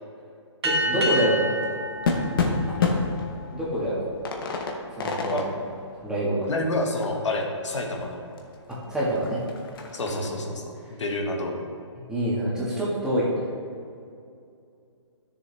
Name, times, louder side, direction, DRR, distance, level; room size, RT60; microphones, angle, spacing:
voice 1, 0.6-1.6 3.5-4.0 5.0-5.4 6.0-6.5 8.7-9.4 10.0-10.2 12.1-13.4, right 1 dB, 5° right, -9 dB, 1.7 m, -26 dB
sound 1, 0.6-3.6, equal, 55° right, 1.8 m, -29 dB
sound 2, 1.1-8.0 8.4-8.5 8.7-10.3, left 4 dB, 50° left, 1.1 m, -30 dB
voice 2, 6.5-8.2 9.9-10.7 11.0-11.6, left 2 dB, 75° left, 1 dB, 1.5 m, -28 dB
11.0 x 6.9 x 3.4 m, 2.5 s
hypercardioid pair, 155°, 15 cm